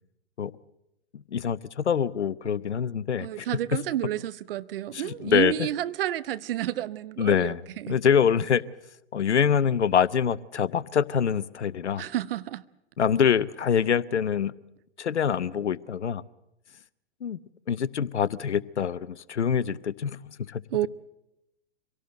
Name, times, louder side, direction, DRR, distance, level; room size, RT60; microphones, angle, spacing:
voice 1, 1.1-3.5 4.9-5.7 7.2-7.6 7.9-8.6 9.1-12.0 13.0-14.5 15.0-16.2 17.2-17.4 17.7-20.6, left 7 dB, 85° left, 0.7 m, -25 dB
voice 2, 3.2-7.5 7.8-8.0 12.0-12.6 20.7-20.9, right 13 dB, 55° right, 0.8 m, -30 dB
24.5 x 17.5 x 7.9 m
figure-of-eight pair, 110°, 33 cm